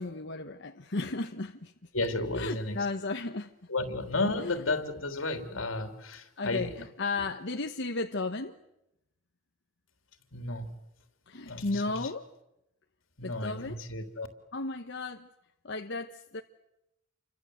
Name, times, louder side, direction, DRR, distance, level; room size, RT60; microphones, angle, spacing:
voice 1, 0.0-1.7 2.3-3.5 4.4-4.5 6.4-8.6 11.3-12.3 13.2-13.8 14.5-15.3 15.6-16.4, left 3 dB, 60° left, 1.1 m, -34 dB
voice 2, 1.9-2.9 3.7-6.9 10.3-10.7 11.4-12.1 13.2-14.3, left 2 dB, 85° left, 3.3 m, -33 dB
29.5 x 25.0 x 8.0 m
head